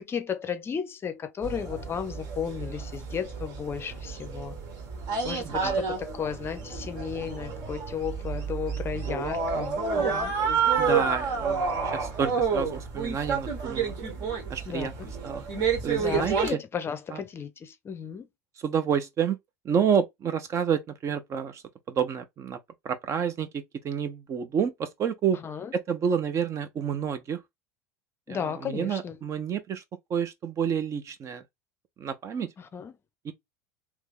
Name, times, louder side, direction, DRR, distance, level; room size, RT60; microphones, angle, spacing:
voice 1, 0.0-4.6 5.2-10.3 14.7-14.9 16.0-18.3 25.4-25.7 28.3-29.2 32.6-32.9, left 7 dB, 25° left, 0.6 m, -34 dB
sound 1, 1.4-16.5, right 5 dB, 50° right, 1.4 m, -29 dB
voice 2, 5.4-5.8 10.8-13.9 14.5-14.9 15.2-15.5 15.8-16.6 17.1-17.2 18.6-19.4 19.6-22.6 22.8-25.4 25.7-27.4 28.3-29.8 30.1-31.4 32.0-32.5 33.2-33.3, right 7 dB, 35° right, 0.7 m, -29 dB
3.0 x 2.9 x 3.6 m
figure-of-eight pair, 75°, 9 cm